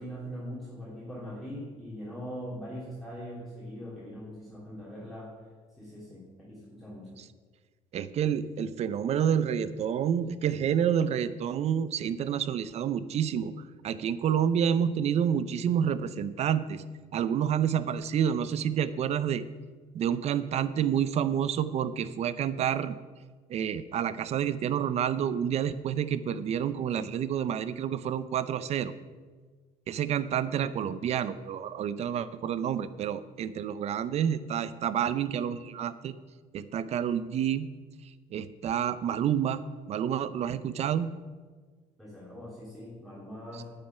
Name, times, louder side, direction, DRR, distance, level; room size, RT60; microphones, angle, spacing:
voice 1, 0.0-5.3 5.8-7.2 42.0-43.6, equal, ahead, -8 dB, 2.8 m, -41 dB
voice 2, 7.9-13.5 13.8-16.8 17.1-19.4 19.9-23.0 23.5-28.9 29.9-36.1 36.5-37.7 38.3-39.6 39.9-41.1 43.6-43.7, right 9 dB, 50° right, 15 dB, 0.6 m, -29 dB
9.2 x 9.0 x 5.6 m, 1.5 s
cardioid pair, 110°, 14 cm